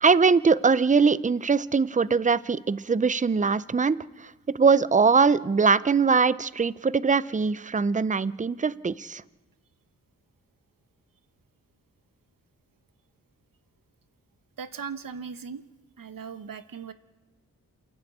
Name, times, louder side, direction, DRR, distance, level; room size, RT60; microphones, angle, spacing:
voice 1, 0.0-4.0 4.5-9.2, right 5 dB, 20° right, 18 dB, 0.6 m, -22 dB
voice 2, 14.6-15.6 16.0-16.9, right 6 dB, 70° right, 11 dB, 1.1 m, -38 dB
28.0 x 11.5 x 8.5 m, 1.2 s
cardioid pair, 65°, 35 cm